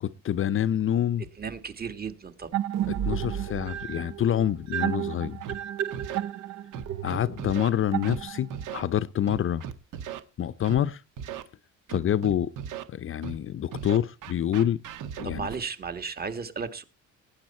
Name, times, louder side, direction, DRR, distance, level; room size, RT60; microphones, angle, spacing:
voice 1, 0.0-1.3 2.9-5.4 7.0-9.6 10.4-11.0 11.9-12.5 12.9-14.8 15.2-15.5, left 10 dB, 40° left, 0.6 m, -27 dB
voice 2, 1.4-2.6 15.2-16.8, right 5 dB, 30° right, 1.8 m, -35 dB
sound 1, 2.5-8.7, right 11 dB, 60° right, 0.7 m, -32 dB
Scratching (performance technique), 5.4-5.5 5.9-6.2 6.7-7.7 8.0-8.2 8.5-8.8 9.3-10.2 10.6-10.8 11.2-11.4 11.9-12.8 13.2-13.4 13.7-15.6, right 8 dB, 75° right, 1.8 m, -37 dB
18.5 x 9.7 x 4.3 m
cardioid pair, 135°, 31 cm